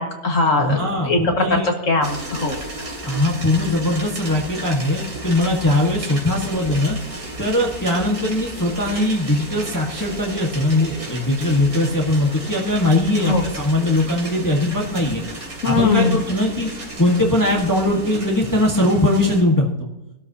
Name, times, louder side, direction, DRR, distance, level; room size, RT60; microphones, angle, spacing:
voice 1, 0.0-2.6 13.2-13.4 15.6-16.2, left 3 dB, 55° left, 3 dB, 2.1 m, -20 dB
voice 2, 0.6-1.7 3.0-16.7 16.9-19.9, left 1 dB, 15° left, -1 dB, 1.4 m, -20 dB
sound 1, 2.0-19.4, right 1 dB, 65° right, 3.4 m, -33 dB
23.0 x 12.5 x 2.9 m, 0.97 s
omnidirectional pair, 1.6 m